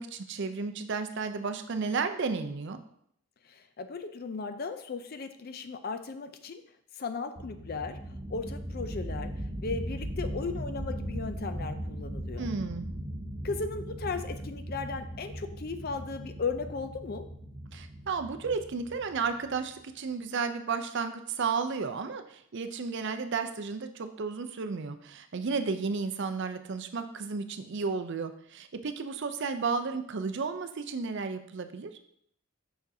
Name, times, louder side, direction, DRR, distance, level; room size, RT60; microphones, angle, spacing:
voice 1, 0.0-2.8 12.4-12.9 17.7-31.9, right 5 dB, 55° right, 9 dB, 0.5 m, -33 dB
voice 2, 3.4-6.6 7.0-9.3 9.6-12.5 13.4-17.2, left 4 dB, 45° left, 9 dB, 0.4 m, -36 dB
sound 1, 7.4-19.7, equal, 20° right, 0.8 m, -38 dB
6.4 x 5.9 x 2.7 m, 0.68 s
head